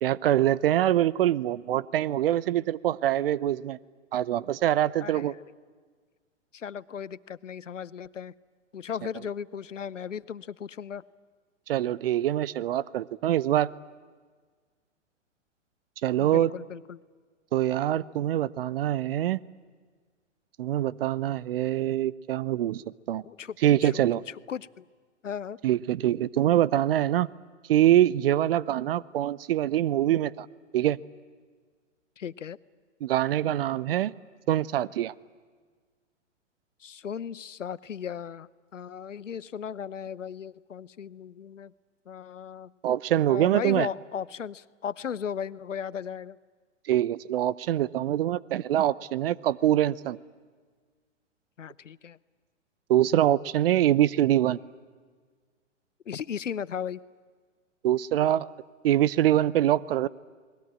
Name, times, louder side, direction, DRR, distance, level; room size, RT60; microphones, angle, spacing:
voice 1, 0.0-3.8 4.1-5.3 11.7-13.7 16.0-16.5 17.5-19.4 20.6-23.2 23.6-24.2 25.6-27.3 27.7-30.5 30.7-31.0 33.0-34.1 34.5-35.1 42.8-43.9 46.9-50.2 52.9-54.6 57.8-58.5 58.8-60.1, right 12 dB, 50° right, 20 dB, 0.7 m, -24 dB
voice 2, 5.0-5.4 6.5-8.3 8.7-11.0 16.1-17.0 23.3-23.6 23.8-24.8 25.2-25.6 32.2-32.6 36.8-41.7 42.1-42.7 43.3-46.4 51.6-52.2 56.1-57.0, left 8 dB, 80° left, 19 dB, 0.8 m, -36 dB
30.0 x 21.0 x 8.9 m, 1.5 s
figure-of-eight pair, 110°, 37 cm